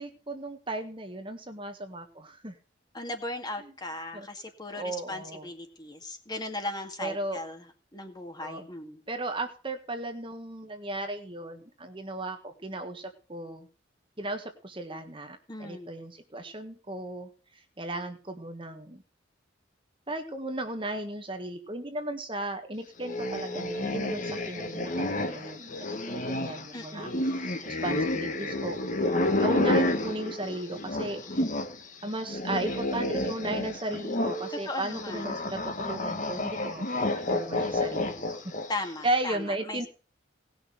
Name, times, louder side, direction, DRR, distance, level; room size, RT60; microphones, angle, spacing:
voice 1, 0.0-2.6 3.6-3.7 4.1-4.3 4.7-5.5 7.0-7.4 8.4-8.7 9.1-13.7 14.2-17.3 17.8-19.0 20.1-28.8 29.4-31.2 32.0-36.9 37.3-38.5 39.0-39.9, right 1 dB, 25° right, 6 dB, 1.5 m, -35 dB
voice 2, 2.9-7.6 7.9-9.0 15.5-15.9 26.7-27.3 34.7-35.4 38.7-39.9, left 2 dB, 20° left, 4 dB, 2.0 m, -37 dB
sound 1, 23.0-31.8 32.0-38.8, left 1 dB, 40° left, 1.7 m, -30 dB
18.5 x 6.3 x 6.7 m, 0.37 s
head